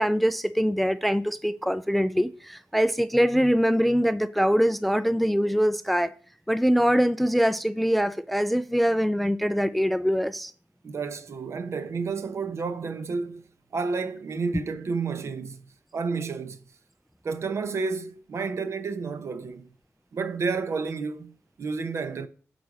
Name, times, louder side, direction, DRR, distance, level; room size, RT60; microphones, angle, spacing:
voice 1, 0.0-6.1 6.5-10.5, equal, ahead, 0.3 m, -23 dB
voice 2, 10.8-13.4 13.7-15.6 15.9-16.6 17.2-19.7 20.1-22.3, right 4 dB, 55° right, 0.8 m, -31 dB
9.4 x 4.0 x 6.1 m
wide cardioid pair, 145°, 6 cm